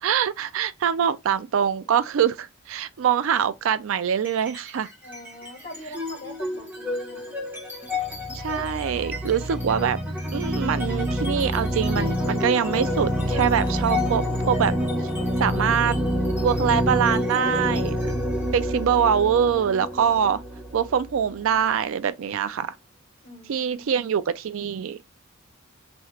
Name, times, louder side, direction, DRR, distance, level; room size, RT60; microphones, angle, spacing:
voice 1, 0.0-4.9 8.3-10.0 10.3-14.7 15.4-16.0 16.4-18.1 18.5-20.4 20.7-22.7 23.5-25.1, right 8 dB, 65° right, 0.3 m, -24 dB
sound 1, 4.2-4.7 5.0-21.6, equal, 10° right, 1.0 m, -27 dB
voice 2, 5.0-7.3 23.2-24.1, left 1 dB, 40° left, 2.1 m, -43 dB
3.1 x 2.8 x 2.8 m
head